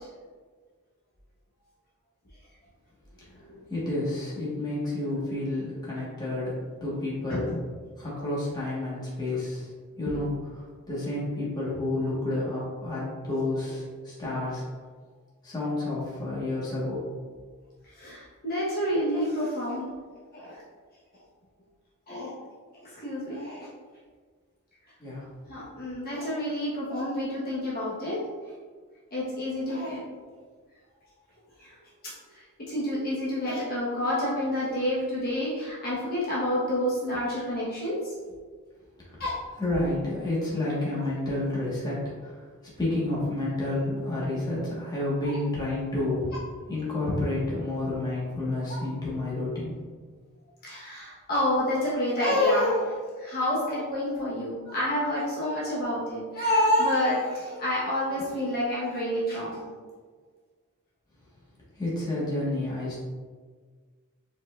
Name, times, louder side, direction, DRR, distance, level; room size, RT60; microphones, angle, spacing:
voice 1, 3.7-7.5 8.0-9.7 10.0-10.3 10.9-14.6 15.4-17.0 25.0-25.3 39.1-39.2 39.6-42.5 42.8-46.3 46.7-49.8 61.8-63.0, left 2 dB, 20° left, -7 dB, 1.3 m, -30 dB
voice 2, 7.3-7.6 17.8-19.9 20.3-20.6 22.1-22.3 22.8-23.7 25.5-28.2 29.1-30.0 31.6-31.8 32.3-38.2 39.2-39.3 41.2-41.3 50.6-59.7, left 1 dB, 45° left, -7 dB, 1.1 m, -28 dB
4.8 x 4.2 x 2.4 m, 1.5 s
head